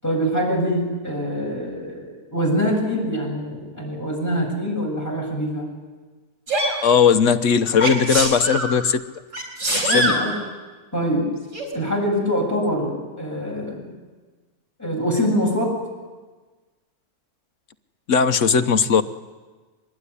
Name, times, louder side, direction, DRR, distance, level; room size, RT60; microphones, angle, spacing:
voice 1, 0.0-5.7 9.8-10.3 10.9-11.3 11.7-13.9 14.8-15.7, equal, 10° left, -1 dB, 7.5 m, -24 dB
Sneeze, 6.5-6.8 7.8-8.7 9.3-10.2 11.5-11.7, right 1 dB, 50° right, 5.1 m, -23 dB
voice 2, 6.8-9.0 9.7-10.1 18.1-19.0, left 6 dB, 55° left, 9 dB, 1.2 m, -18 dB
23.5 x 21.0 x 9.9 m, 1.3 s
omnidirectional pair, 1.6 m